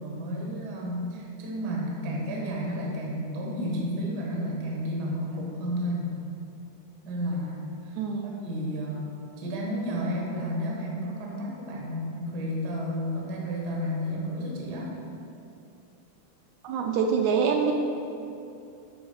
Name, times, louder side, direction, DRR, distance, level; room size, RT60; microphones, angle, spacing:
voice 1, 0.0-6.2 7.0-7.9 8.2-9.1 9.4-14.9, equal, 60° right, -2 dB, 1.0 m, -32 dB
voice 2, 8.0-8.3 16.6-17.7, right 6 dB, 80° right, 2 dB, 1.8 m, -25 dB
8.5 x 3.5 x 5.7 m, 2.7 s
omnidirectional pair, 3.5 m